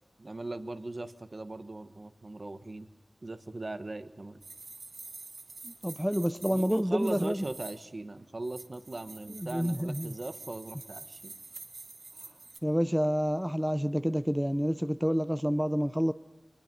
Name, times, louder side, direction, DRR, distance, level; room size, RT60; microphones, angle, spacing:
voice 1, 0.2-2.9 3.2-4.4 6.5-11.3, right 2 dB, 50° right, 1.3 m, -39 dB
sound 1, 4.4-7.9 8.4-12.6, right 3 dB, 85° right, 1.5 m, -47 dB
voice 2, 5.6-7.4 9.3-10.1 12.6-16.1, equal, 5° right, 0.6 m, -28 dB
23.5 x 20.5 x 5.4 m
cardioid pair, 45°, 0 cm